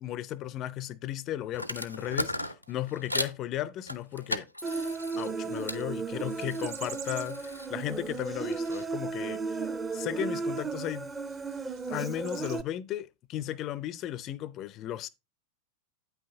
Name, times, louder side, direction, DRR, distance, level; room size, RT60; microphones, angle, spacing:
voice 1, 0.0-4.5 5.2-11.1 11.9-15.1, left 12 dB, 35° left, 0.5 m, -35 dB
sound 1, 1.5-3.4 3.9-5.8 6.2-8.8, left 1 dB, 90° left, 0.6 m, -37 dB
Human voice, 4.6-12.6, right 4 dB, 15° right, 0.7 m, -35 dB
sound 2, 5.5-12.6, right 10 dB, 45° right, 1.0 m, -50 dB
8.9 x 5.7 x 3.7 m
figure-of-eight pair, 90°, 0 cm